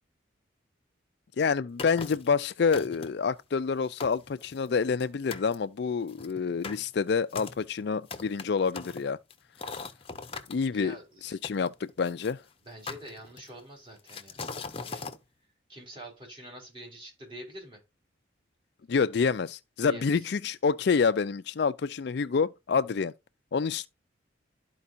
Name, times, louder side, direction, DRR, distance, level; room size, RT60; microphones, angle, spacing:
voice 1, 1.4-9.2 10.5-11.0 11.2-12.4 18.9-23.1 23.5-23.9, left 5 dB, 55° left, 0.4 m, -27 dB
sound 1, 1.8-2.3 2.7-3.3 3.7-3.8 4.0-5.0 5.3-5.6 6.1-10.6 11.4-12.3 12.9-13.6 14.1-15.2, left 4 dB, 30° left, 0.8 m, -40 dB
voice 2, 10.7-11.4 12.6-14.5 14.8-15.0 15.7-17.8 19.8-20.3, right 1 dB, 25° right, 4.1 m, -46 dB
12.5 x 4.6 x 2.6 m
head